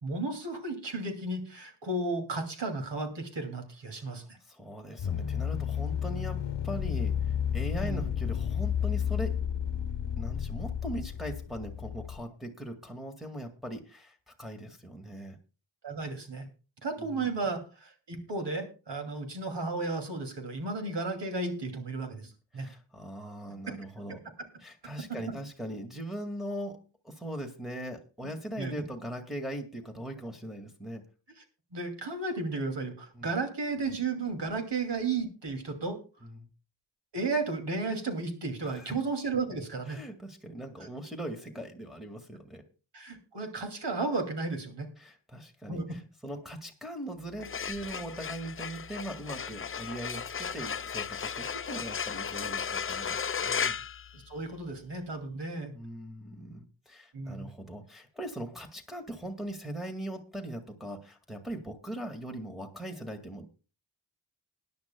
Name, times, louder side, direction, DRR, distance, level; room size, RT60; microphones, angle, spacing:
voice 1, 0.0-4.2 7.8-8.0 15.8-16.5 16.8-22.7 28.6-28.8 31.7-36.0 37.1-40.0 42.9-44.9 45.7-45.9 54.1-55.7 57.1-57.5, right 3 dB, 65° right, 6 dB, 2.7 m, -33 dB
voice 2, 4.4-9.4 10.2-15.4 17.0-17.6 22.5-24.2 24.6-31.1 33.1-33.3 36.2-36.5 38.7-38.9 39.9-42.6 45.0-53.8 55.7-63.5, right 1 dB, ahead, 1 dB, 1.8 m, -40 dB
sound 1, 5.0-12.2, left 8 dB, 70° left, 0.9 m, -32 dB
sound 2, 47.3-54.7, left 6 dB, 30° left, 0.5 m, -35 dB
21.0 x 10.5 x 2.2 m, 0.33 s
cardioid pair, 50°, 44 cm